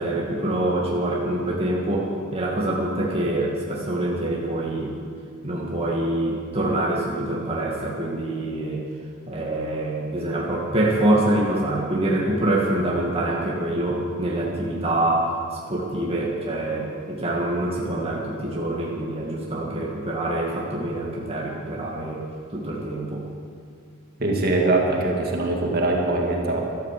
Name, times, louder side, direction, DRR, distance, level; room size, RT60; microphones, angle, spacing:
voice 1, 0.0-5.0 5.4-8.8 9.3-15.4 15.7-22.2 22.5-23.2, right 1 dB, 30° right, -4 dB, 2.0 m, -25 dB
voice 2, 24.2-26.6, right 2 dB, 50° right, 0 dB, 2.2 m, -22 dB
13.0 x 13.0 x 7.5 m, 2.2 s
head